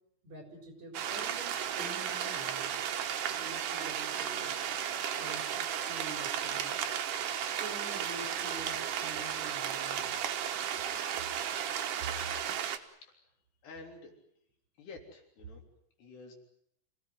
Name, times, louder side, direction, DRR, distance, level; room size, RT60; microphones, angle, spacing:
voice 1, 0.2-2.9 3.3-4.6 5.2-6.8 7.4-10.2, right 2 dB, 40° right, 4 dB, 4.9 m, -47 dB
sound 1, 0.9-12.8, right 9 dB, 60° right, 2.4 m, -34 dB
voice 2, 12.8-13.3 13.6-14.1 14.8-15.6 16.0-16.3, left 3 dB, 65° left, 3 dB, 5.5 m, -50 dB
27.5 x 18.0 x 9.5 m, 0.71 s
omnidirectional pair, 5.2 m